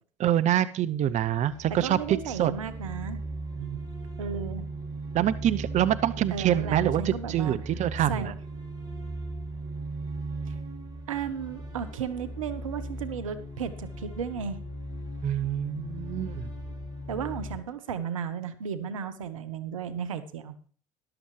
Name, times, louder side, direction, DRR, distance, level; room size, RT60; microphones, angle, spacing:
voice 1, 0.2-2.5 3.6-3.9 5.1-8.3 15.2-16.5, right 11 dB, 45° right, 15 dB, 0.6 m, -26 dB
sound 1, 1.1-17.6, right 2 dB, 25° right, 6.5 m, -37 dB
voice 2, 1.8-3.2 4.2-4.7 6.3-7.6 8.1-8.4 10.5-10.6 11.1-14.6 17.1-20.5, right 7 dB, 90° right, 13 dB, 1.0 m, -34 dB
13.5 x 12.0 x 3.2 m, 0.43 s
hypercardioid pair, 70°, 17 cm